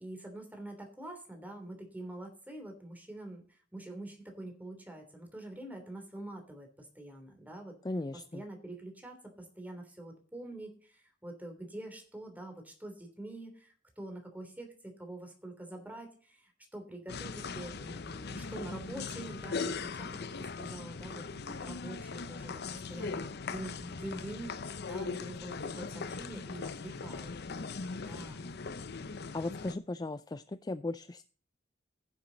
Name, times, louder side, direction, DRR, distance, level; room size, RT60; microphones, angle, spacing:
voice 1, 0.0-7.8 8.3-20.1 20.4-27.3 28.0-28.5, right 1 dB, 10° right, 3 dB, 3.1 m, -45 dB
voice 2, 7.8-8.4 29.3-31.2, left 2 dB, 20° left, 12 dB, 0.4 m, -37 dB
sound 1, 17.1-29.7, left 4 dB, 55° left, 0.7 m, -40 dB
16.0 x 7.3 x 4.0 m, 0.42 s
head